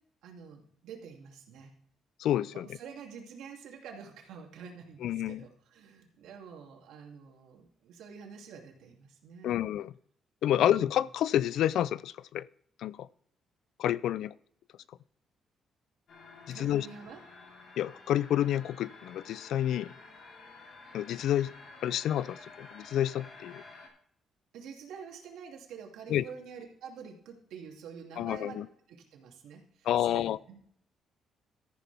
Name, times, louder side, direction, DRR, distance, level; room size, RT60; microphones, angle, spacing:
voice 1, 0.2-1.7 2.5-9.5 10.6-10.9 16.5-17.2 24.5-28.6 28.9-30.7, right 6 dB, 85° right, 1 dB, 2.7 m, -47 dB
voice 2, 2.2-2.7 5.0-5.5 9.4-9.9 10.4-12.5 12.8-13.1 13.8-14.3 16.5-16.9 17.8-19.9 20.9-21.5 21.8-23.6 26.1-26.2 28.2-28.7 29.9-30.4, left 11 dB, 80° left, 20 dB, 0.4 m, -29 dB
sound 1, 16.1-23.9, left 3 dB, 65° left, 4.0 m, -51 dB
14.0 x 10.0 x 3.5 m, 0.66 s
cardioid pair, 90°, 0 cm